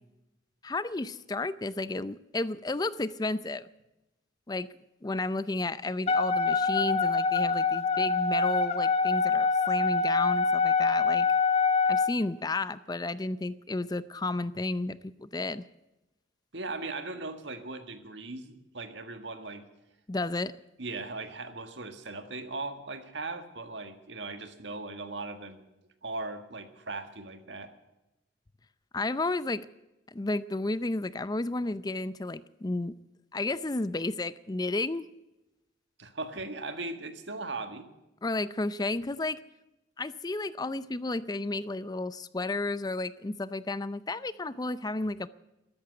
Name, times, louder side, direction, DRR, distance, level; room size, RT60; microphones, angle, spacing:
voice 1, 0.6-3.7 4.5-4.7 5.0-11.3 11.9-15.6 20.1-20.5 28.9-29.7 30.1-32.9 33.3-35.1 38.2-39.4 40.0-45.3, left 2 dB, 20° left, 16 dB, 0.5 m, -32 dB
Wind instrument woodwind instrument, 6.1-12.1, left 4 dB, 35° left, 1.2 m, -25 dB
voice 2, 16.5-19.6 20.8-25.6 26.0-27.7 36.0-37.9, right 3 dB, 75° right, 8 dB, 1.8 m, -38 dB
13.5 x 13.5 x 7.9 m, 0.96 s
head